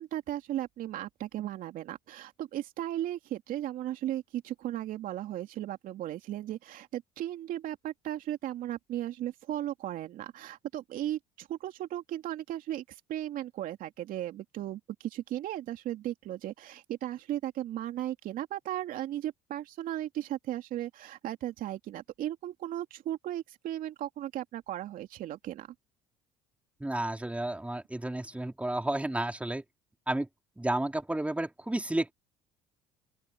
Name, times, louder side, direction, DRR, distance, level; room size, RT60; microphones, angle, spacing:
voice 1, 0.0-25.7, right 13 dB, 60° right, 2.9 m, -36 dB
voice 2, 26.8-29.6 30.1-30.3 30.6-32.1, right 1 dB, 10° right, 4.4 m, -31 dB
open air
supercardioid pair, 75°, 16 cm